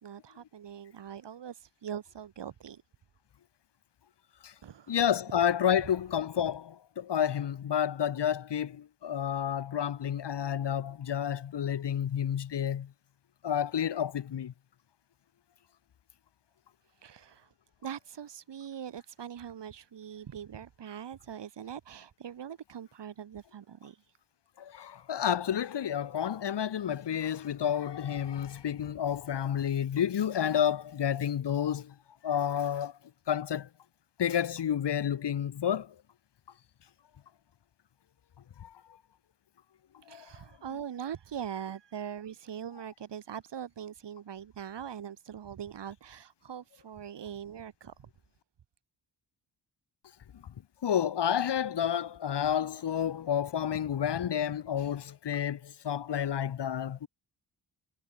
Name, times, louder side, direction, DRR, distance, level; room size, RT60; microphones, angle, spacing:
voice 1, 0.0-2.8 4.6-5.0 17.0-17.5 17.8-24.0 40.1-47.9, right 8 dB, 80° right, 7.4 m, -42 dB
voice 2, 4.9-12.9 13.4-14.5 24.6-31.9 32.2-32.9 33.3-33.7 34.2-35.9 38.6-38.7 40.1-40.3 50.8-57.1, left 9 dB, 75° left, 3.0 m, -30 dB
wide cardioid pair, 115°, 41 cm